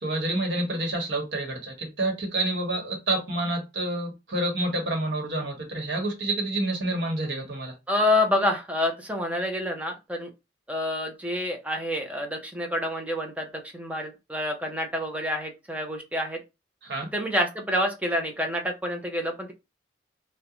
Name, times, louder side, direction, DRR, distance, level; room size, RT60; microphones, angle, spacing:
voice 1, 0.0-7.7 16.8-17.1, right 2 dB, 75° right, 1.1 m, -28 dB
voice 2, 7.9-10.3 10.7-13.5 13.7-16.4 17.1-19.5, left 1 dB, 10° right, 0.5 m, -27 dB
2.4 x 2.1 x 2.8 m
head